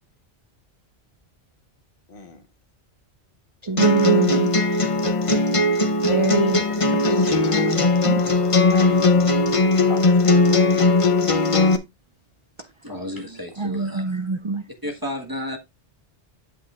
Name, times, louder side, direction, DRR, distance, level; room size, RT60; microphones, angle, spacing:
voice 1, 2.1-2.4 8.7-10.7 12.9-13.2, left 3 dB, 50° left, 1.5 m, -41 dB
voice 2, 3.6-4.8 6.0-6.7 7.0-7.5 8.0-8.2 13.6-14.6, right 2 dB, 50° right, 0.3 m, -24 dB
sound 1, 3.8-11.8, left 2 dB, 35° left, 0.7 m, -18 dB
sound 2, 6.2-11.3, left 5 dB, 75° left, 1.3 m, -37 dB
voice 3, 12.8-14.0 14.8-15.6, left 1 dB, 20° right, 1.5 m, -32 dB
8.2 x 8.2 x 2.4 m
omnidirectional pair, 1.2 m